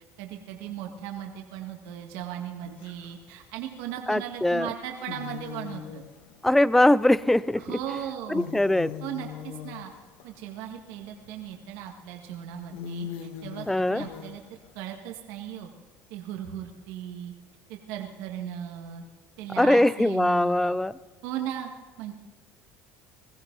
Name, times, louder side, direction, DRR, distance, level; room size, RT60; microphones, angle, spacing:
voice 1, 0.2-6.0 7.6-8.5 9.0-9.9 10.2-14.4 14.8-15.7 16.1-17.3 17.7-19.0 19.4-20.8 21.2-21.7 22.0-22.1, right 10 dB, 80° right, 2 dB, 1.9 m, -37 dB
sound 1, 2.6-3.2 4.4-4.5 5.0-7.8 8.1-11.1 11.8-11.9 12.3-12.4 12.7-14.9, left 8 dB, 90° left, 1.4 m, -40 dB
voice 2, 4.1-4.7 6.4-7.8 8.3-8.9 13.7-14.0 19.6-20.9, left 1 dB, 5° left, 19 dB, 0.4 m, -22 dB
21.5 x 15.0 x 4.0 m, 1.2 s
supercardioid pair, 110°, 5 cm